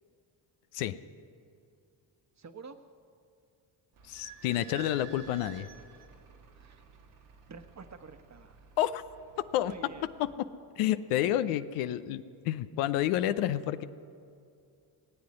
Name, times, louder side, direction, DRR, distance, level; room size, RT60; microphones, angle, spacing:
voice 1, 2.4-2.7 6.5-6.8 7.5-8.6 9.6-10.1, right 5 dB, 35° right, 8 dB, 1.2 m, -48 dB
Idling / Squeak, 3.9-10.3, right 6 dB, 90° right, 1.7 m, -52 dB
voice 2, 4.1-5.7 8.8-9.0 9.5-9.7 10.2-10.3 10.8-13.8, left 12 dB, 85° left, 13 dB, 0.6 m, -29 dB
19.0 x 7.9 x 9.7 m, 2.5 s
supercardioid pair, 60°, 50 cm